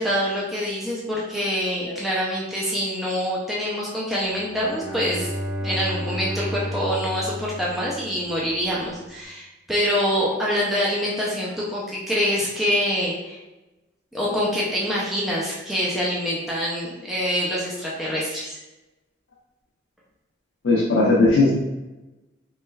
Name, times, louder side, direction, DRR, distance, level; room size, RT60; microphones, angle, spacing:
voice 1, 0.0-5.3 5.6-13.4 14.1-18.6, equal, ahead, -6 dB, 0.4 m, -25 dB
Bowed string instrument, 4.3-8.4, equal, 80° right, 1.1 m, -32 dB
voice 2, 20.6-21.5, left 2 dB, 80° left, -4 dB, 0.5 m, -18 dB
3.2 x 3.1 x 2.3 m, 1.0 s
head